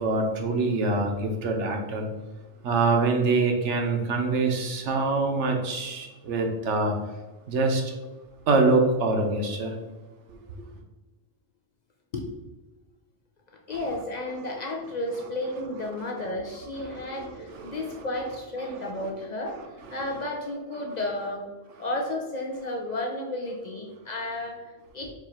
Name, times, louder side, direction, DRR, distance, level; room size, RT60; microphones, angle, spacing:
voice 1, 0.0-2.1 2.6-6.9 7.5-7.8 8.5-9.7 16.8-18.0 18.7-18.8 19.5-19.6, right 3 dB, 65° right, 3 dB, 1.0 m, -25 dB
voice 2, 13.7-21.5 21.8-25.1, left 1 dB, 60° left, 1 dB, 0.4 m, -32 dB
4.6 x 2.5 x 4.2 m, 1.2 s
omnidirectional pair, 1.3 m